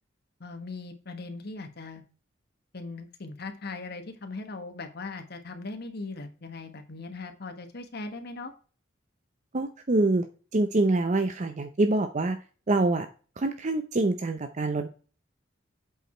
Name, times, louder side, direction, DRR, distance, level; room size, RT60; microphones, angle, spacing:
voice 1, 0.4-2.0 2.7-8.5, left 3 dB, 60° left, 7 dB, 1.3 m, -39 dB
voice 2, 9.5-10.2 10.5-12.4 12.7-13.1 13.4-14.9, right 2 dB, 40° right, 8 dB, 0.6 m, -25 dB
8.1 x 4.7 x 4.3 m, 0.37 s
head